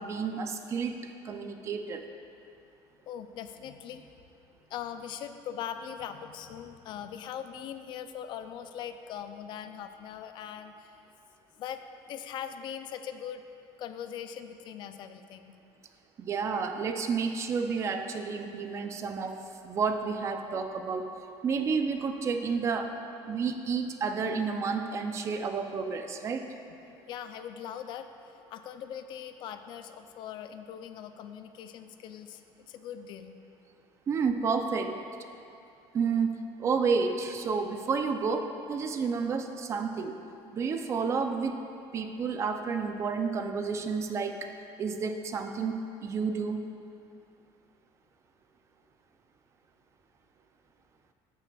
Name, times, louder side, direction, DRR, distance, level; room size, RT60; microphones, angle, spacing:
voice 1, 0.0-2.0 16.2-21.1 21.4-22.9 23.3-26.4 34.1-35.0 35.9-40.1 40.5-41.6 41.9-44.5 44.8-46.6, right 5 dB, 25° right, 7 dB, 0.4 m, -30 dB
voice 2, 3.1-4.0 4.7-11.0 11.6-11.8 12.1-13.4 13.8-15.5 26.9-28.1 28.5-33.4, left 9 dB, 45° left, 9 dB, 0.4 m, -41 dB
13.5 x 5.8 x 2.3 m, 2.7 s
cardioid pair, 170°, 11 cm